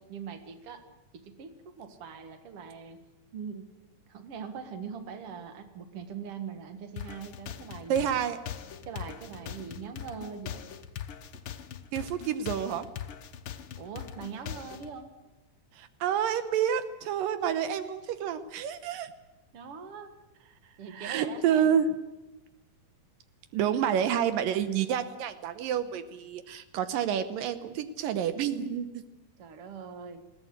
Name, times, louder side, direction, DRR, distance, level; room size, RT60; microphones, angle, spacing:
voice 1, 0.1-0.8 1.1-3.0 3.3-3.7 4.1-8.2 8.9-10.6 13.8-15.1 19.5-20.1 20.8-21.8 29.4-30.2, right 6 dB, 50° right, 8 dB, 2.2 m, -42 dB
sound 1, 7.0-14.9, left 9 dB, 70° left, 1.2 m, -41 dB
voice 2, 7.9-8.4 11.9-12.9 15.8-19.1 20.9-21.9 23.5-29.0, right 9 dB, 85° right, 11 dB, 2.6 m, -29 dB
21.0 x 16.5 x 9.6 m, 1.1 s
omnidirectional pair, 3.9 m